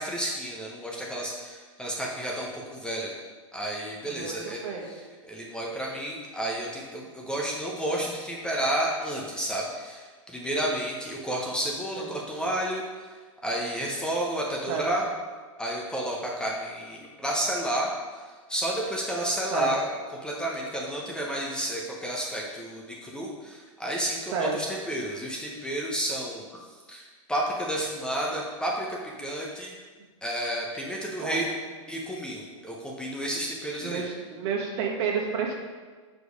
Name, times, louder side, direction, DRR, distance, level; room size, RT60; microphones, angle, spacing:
voice 1, 0.0-3.1 3.5-13.2 13.4-15.0 15.6-18.2 18.5-19.9 20.2-26.4 26.9-29.8 30.2-31.5 31.9-34.1, right 1 dB, 5° left, -3 dB, 0.8 m, -31 dB
voice 2, 4.1-5.0 11.9-12.1 14.7-14.9 19.5-19.7 24.3-24.8 31.2-31.5 33.8-35.5, right 5 dB, 55° right, 0 dB, 1.4 m, -31 dB
5.1 x 4.6 x 5.1 m, 1.4 s
hypercardioid pair, 130°, 17 cm